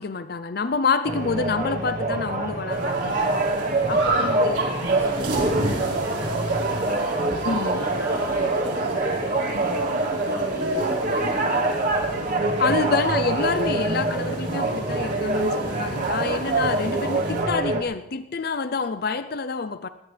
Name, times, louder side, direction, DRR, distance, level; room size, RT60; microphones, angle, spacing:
voice 1, 0.0-3.1 3.9-4.6 7.4-7.8 12.6-19.9, left 4 dB, 50° left, 12 dB, 0.5 m, -27 dB
sound 1, 1.0-17.8, right 2 dB, 40° right, 1.3 m, -25 dB
sound 2, 2.7-17.4, right 2 dB, 65° right, 4.5 m, -32 dB
voice 2, 4.0-11.9 13.0-13.2, equal, 15° right, -6 dB, 4.9 m, -40 dB
20.5 x 17.0 x 3.4 m, 0.91 s
head